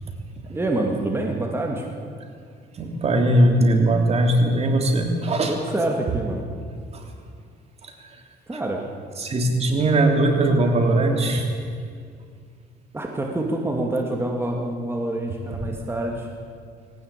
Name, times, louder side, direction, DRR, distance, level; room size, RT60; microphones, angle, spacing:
voice 1, 0.5-1.9 5.5-6.4 8.5-8.8 12.9-16.3, right 1 dB, 15° right, 1 dB, 2.7 m, -26 dB
voice 2, 2.8-5.6 6.9-7.0 9.2-11.5, right 1 dB, 40° right, 3 dB, 3.3 m, -20 dB
20.0 x 18.5 x 8.5 m, 2.2 s
cardioid pair, 110°, 17 cm